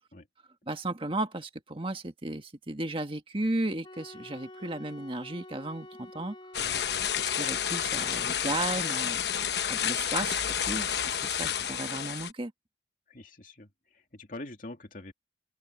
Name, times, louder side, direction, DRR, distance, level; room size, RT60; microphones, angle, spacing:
voice 1, 0.7-6.3 7.2-9.3 9.7-12.5, right 2 dB, 30° right, 1.7 m, -34 dB
Wind instrument woodwind instrument, 3.8-8.7, left 1 dB, 30° left, 3.4 m, -48 dB
sound 1, 6.5-12.3, left 9 dB, 70° left, 1.0 m, -30 dB
voice 2, 6.6-7.0 11.5-11.7 13.1-15.1, left 2 dB, 50° left, 2.7 m, -45 dB
open air
head